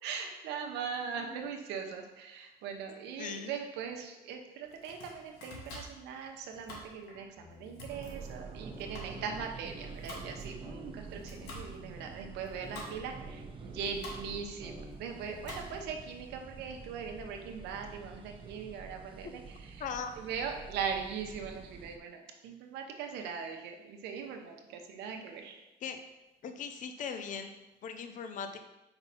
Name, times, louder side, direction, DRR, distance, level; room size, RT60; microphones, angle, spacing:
voice 1, 0.0-19.9 20.2-25.6, right 6 dB, 85° right, 4 dB, 0.9 m, -40 dB
voice 2, 2.9-3.5 19.2-19.3 19.8-20.1 25.8-26.0 26.4-28.6, left 6 dB, 50° left, 7 dB, 0.6 m, -40 dB
Domestic sounds home sounds, 4.6-16.0, left 1 dB, 80° left, 1.8 m, -49 dB
sound 1, 7.4-8.1 8.6-12.1 12.6-15.8, equal, 5° right, 1.9 m, -51 dB
sound 2, 7.9-22.0, right 5 dB, 30° right, 0.6 m, -48 dB
5.3 x 3.9 x 5.7 m, 0.99 s
cardioid pair, 110°, 17 cm